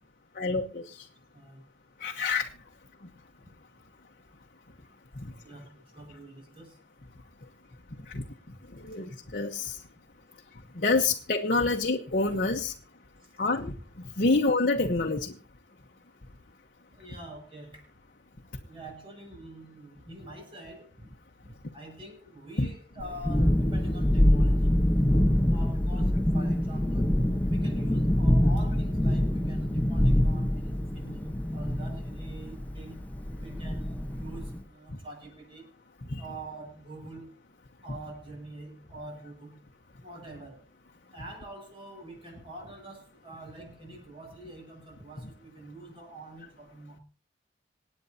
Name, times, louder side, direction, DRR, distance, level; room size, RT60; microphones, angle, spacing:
voice 1, 0.4-1.0 2.0-2.5 8.1-8.2 8.8-9.8 10.8-12.7 13.4-13.7 14.2-15.3 22.6-22.7 36.1-36.2, left 3 dB, 50° left, 1 dB, 1.1 m, -27 dB
voice 2, 1.3-1.7 3.4-3.5 5.4-6.8 8.9-9.0 13.2-13.3 16.9-17.9 18.3-21.1 21.4-24.7 25.5-27.1 27.5-33.0 33.4-35.7 36.2-37.3 37.8-39.6 40.0-40.6 41.1-47.0, right 1 dB, 30° right, 0 dB, 7.1 m, -46 dB
Thunderstorm, 23.0-34.6, left 1 dB, 10° left, 1.0 m, -25 dB
27.0 x 9.1 x 2.8 m, 0.34 s
head